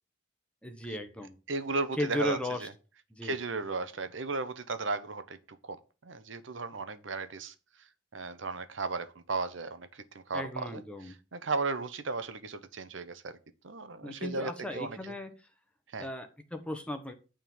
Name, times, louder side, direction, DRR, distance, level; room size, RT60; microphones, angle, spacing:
voice 1, 0.6-1.4 2.0-2.7 3.1-3.4 10.3-11.1 14.0-15.3 16.0-17.1, left 1 dB, 5° left, 1.0 m, -36 dB
voice 2, 1.5-2.7 3.2-7.5 8.1-13.4 13.6-15.1 15.9-16.1, right 3 dB, 70° right, 0.9 m, -35 dB
8.9 x 3.7 x 7.0 m
head